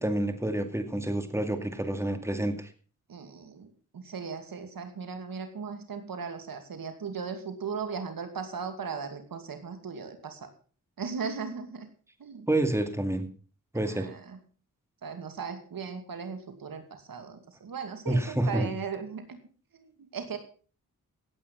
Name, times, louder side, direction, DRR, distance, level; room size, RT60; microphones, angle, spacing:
voice 1, 0.0-2.7 12.5-13.3 13.7-14.1 18.1-18.7, right 1 dB, 10° right, 8 dB, 2.3 m, -28 dB
voice 2, 3.1-10.5 11.0-11.9 12.2-12.5 13.9-14.4 15.0-19.4 19.7-20.4, right 5 dB, 75° right, 8 dB, 2.5 m, -37 dB
16.5 x 8.7 x 5.6 m, 0.39 s
cardioid pair, 60°, 35 cm